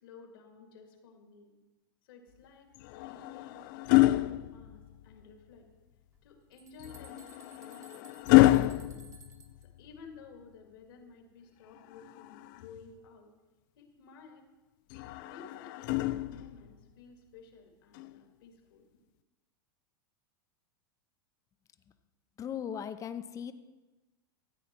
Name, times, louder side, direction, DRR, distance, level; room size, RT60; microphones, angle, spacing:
voice 1, 0.0-1.5 2.0-5.7 6.2-9.1 9.8-13.3 13.8-14.5 14.9-18.8, left 4 dB, 75° left, 3 dB, 2.1 m, -54 dB
sound 1, 2.7-5.2 6.8-10.0 11.8-12.9 14.9-16.7 17.9-18.2, left 17 dB, 55° left, 0.4 m, -28 dB
sound 2, 6.1-9.7, right 4 dB, 25° right, 1.3 m, -57 dB
voice 2, 22.4-23.5, left 8 dB, 25° left, 11 dB, 0.7 m, -38 dB
14.0 x 8.2 x 4.5 m, 1.2 s
hypercardioid pair, 110°, 12 cm